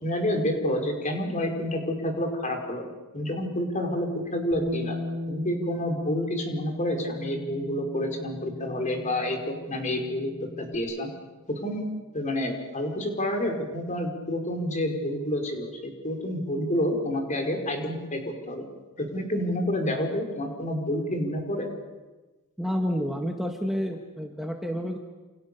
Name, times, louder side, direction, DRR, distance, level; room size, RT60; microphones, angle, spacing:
voice 1, 0.0-2.8 3.1-5.0 5.3-11.1 11.5-11.9 12.1-18.6 19.0-21.7, left 1 dB, 35° left, 3 dB, 5.2 m, -29 dB
Bass guitar, 4.5-10.8, left 2 dB, 55° right, 4.9 m, -37 dB
voice 2, 22.6-25.0, equal, ahead, 2 dB, 1.7 m, -29 dB
29.0 x 28.0 x 7.0 m, 1.2 s
head